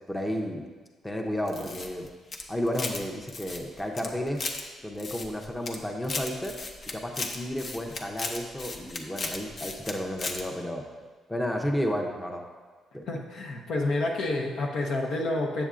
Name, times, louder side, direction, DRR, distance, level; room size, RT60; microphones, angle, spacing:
voice 1, 0.1-0.6 1.0-2.1 2.5-4.5 4.8-6.5 6.9-10.8 11.3-12.4 12.9-13.0, equal, 10° left, 2 dB, 0.7 m, -32 dB
sound 1, 1.5-3.0 3.3-4.6 5.0-5.8 6.0-9.9 10.2-10.4, left 3 dB, 45° left, 0.7 m, -35 dB
voice 2, 13.1-15.7, left 2 dB, 75° left, 0 dB, 0.9 m, -29 dB
7.4 x 6.9 x 2.5 m, 1.4 s
cardioid pair, 90°, 0 cm